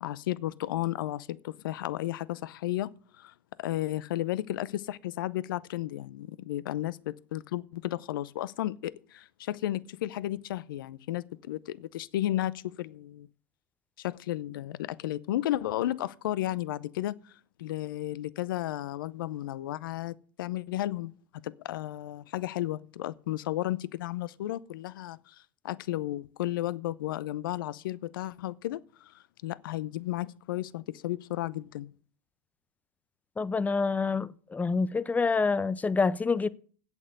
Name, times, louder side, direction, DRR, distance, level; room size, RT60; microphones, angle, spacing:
voice 1, 0.0-2.9 3.2-13.3 14.0-17.3 17.6-21.1 21.4-25.4 25.6-31.9, left 14 dB, 75° left, 0.6 m, -33 dB
voice 2, 33.4-36.5, left 4 dB, 15° left, 0.5 m, -27 dB
8.4 x 7.2 x 7.8 m
hypercardioid pair, 100°, 11 cm